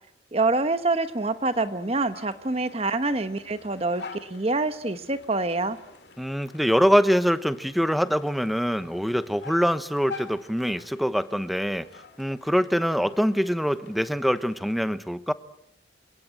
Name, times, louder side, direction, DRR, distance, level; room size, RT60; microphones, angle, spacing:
voice 1, 0.3-5.8, right 2 dB, 35° right, 10 dB, 1.1 m, -26 dB
sound 1, 1.1-14.7, left 4 dB, 65° left, 2.3 m, -47 dB
voice 2, 6.2-11.9 12.2-15.3, equal, ahead, 12 dB, 1.0 m, -24 dB
28.5 x 17.5 x 8.8 m, 0.75 s
head